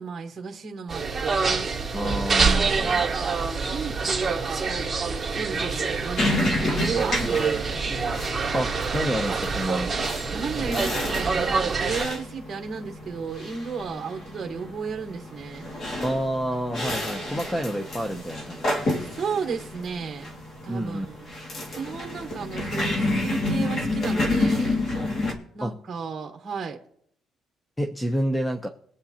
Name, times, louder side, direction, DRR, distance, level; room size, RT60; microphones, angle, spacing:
voice 1, 0.0-1.6 2.0-4.7 5.3-7.9 10.3-15.7 17.1-17.6 18.9-20.3 20.6-21.3 21.7-24.8 25.5-26.8, right 5 dB, 30° right, 3 dB, 1.3 m, -34 dB
sound 1, 0.9-12.0, right 4 dB, 15° right, 2.2 m, -26 dB
voice 2, 1.9-2.7 8.5-9.9 16.0-18.9 20.7-21.1 25.6-25.7 27.8-28.7, equal, 5° left, 5 dB, 0.8 m, -28 dB
sound 2, 6.2-25.3, left 2 dB, 50° left, 2.1 m, -30 dB
21.5 x 8.3 x 2.9 m, 0.68 s
cardioid pair, 125°, 0 cm